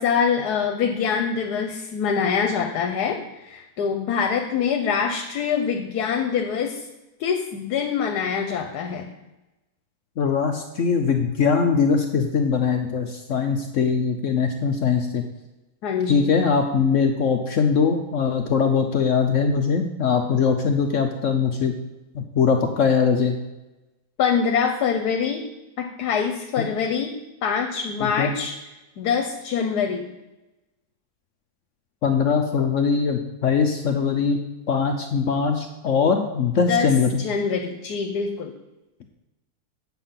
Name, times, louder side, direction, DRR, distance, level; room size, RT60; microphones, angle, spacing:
voice 1, 0.0-6.9 7.2-9.1 15.8-16.3 24.2-25.4 25.8-27.1 27.4-28.6 29.0-30.1 36.6-36.9 37.2-38.5, left 6 dB, 80° left, 5 dB, 1.3 m, -24 dB
voice 2, 10.2-15.2 16.1-21.7 22.1-23.4 28.0-28.3 32.0-37.2, left 5 dB, 60° left, 5 dB, 1.0 m, -21 dB
7.9 x 7.3 x 5.8 m, 1.0 s
omnidirectional pair, 1.7 m